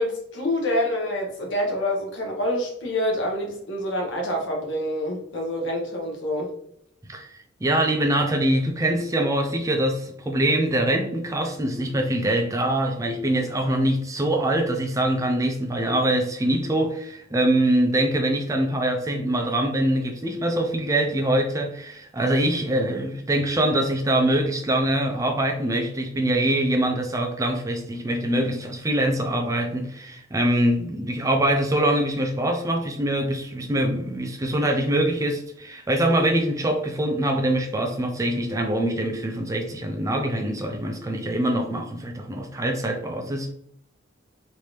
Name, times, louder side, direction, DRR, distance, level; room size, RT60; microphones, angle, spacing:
voice 1, 0.0-6.5, left 1 dB, 65° left, 0 dB, 1.0 m, -27 dB
voice 2, 7.0-43.5, right 1 dB, 15° right, 3 dB, 0.4 m, -24 dB
3.2 x 2.6 x 3.0 m, 0.70 s
head